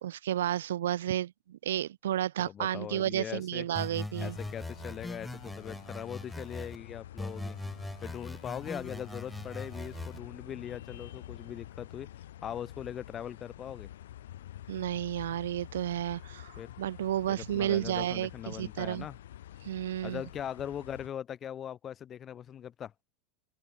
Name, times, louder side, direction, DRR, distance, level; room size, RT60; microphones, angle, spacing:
voice 1, 0.0-4.4 14.7-19.1 19.6-20.2, right 12 dB, 65° right, 0.6 m, -32 dB
voice 2, 2.4-3.7 4.2-7.6 8.0-12.1 12.4-13.9 16.6-16.7 17.3-19.2 20.0-22.9, left 9 dB, 30° left, 1.4 m, -40 dB
sound 1, 3.7-6.8 7.2-10.2, left 1 dB, 5° left, 1.5 m, -40 dB
sound 2, 4.2-21.1, left 12 dB, 65° left, 3.1 m, -48 dB
open air
figure-of-eight pair, 80°, 0 cm